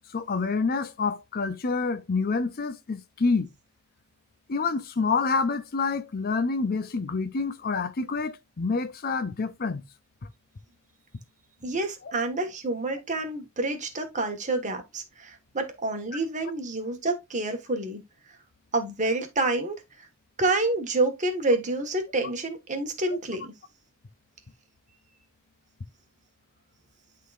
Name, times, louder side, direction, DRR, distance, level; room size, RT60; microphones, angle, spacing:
voice 1, 0.1-3.5 4.5-9.8, left 4 dB, 45° left, 0.6 m, -27 dB
voice 2, 11.6-18.0 18.7-19.8 20.4-23.5, right 2 dB, 35° right, 1.5 m, -28 dB
11.5 x 3.9 x 2.4 m
head